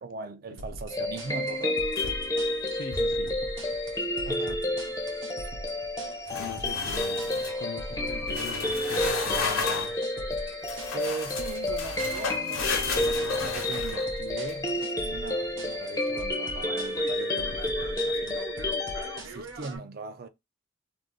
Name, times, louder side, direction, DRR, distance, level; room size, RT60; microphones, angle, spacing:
voice 1, 0.0-1.8 4.3-4.7 10.9-18.5 19.1-20.3, right 4 dB, 45° right, 0.4 m, -40 dB
sound 1, 0.6-19.8, right 1 dB, 65° right, 0.8 m, -42 dB
sound 2, 0.9-19.2, left 1 dB, 15° left, 0.5 m, -30 dB
sound 3, 2.0-2.4 2.8-3.2 6.3-7.6 8.3-10.0 10.7-14.5, left 4 dB, 90° left, 0.9 m, -33 dB
voice 2, 2.7-3.4 4.2-4.8 6.3-10.0, left 5 dB, 65° left, 0.5 m, -43 dB
2.5 x 2.4 x 3.6 m
head